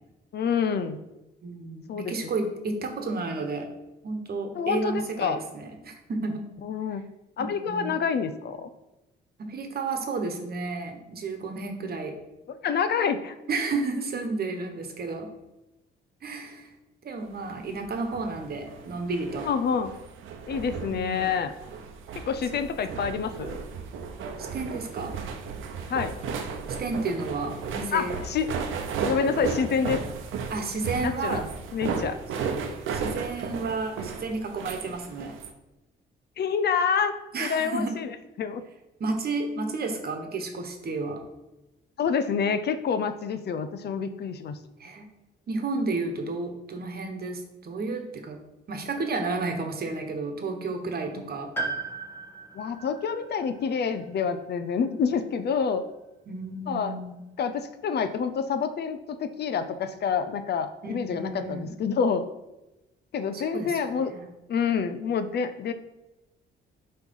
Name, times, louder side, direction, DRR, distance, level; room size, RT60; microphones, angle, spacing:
voice 1, 0.3-1.0 1.9-2.1 4.5-5.4 6.6-7.1 7.4-8.7 12.6-13.3 19.4-19.9 20.5-21.5 22.2-23.6 25.9-26.2 27.9-28.5 29.0-30.0 31.0-31.4 31.7-32.2 36.4-38.1 38.4-38.6 42.0-44.6 52.5-55.8 56.7-56.9 57.4-62.2 63.1-64.1 64.5-65.7, left 6 dB, 55° left, 10 dB, 0.6 m, -27 dB
voice 2, 1.4-3.7 4.0-6.4 7.7-8.0 9.4-12.2 13.5-15.3 16.2-16.7 17.0-19.5 20.9-21.2 22.5-22.6 24.4-25.1 26.8-28.2 30.5-31.5 32.4-35.4 37.3-37.9 39.0-41.2 44.8-45.1 45.5-48.4 48.7-51.5 56.3-57.2 60.8-61.7 63.3-63.8 64.1-64.3, right 3 dB, 50° right, 4 dB, 1.3 m, -32 dB
sound 1, 17.6-35.5, right 5 dB, 80° right, 0.7 m, -35 dB
Piano, 51.5-55.4 55.7-55.8 56.9-57.0, right 3 dB, 10° left, 1.6 m, -37 dB
8.1 x 3.2 x 5.5 m, 0.99 s
cardioid pair, 90°, 20 cm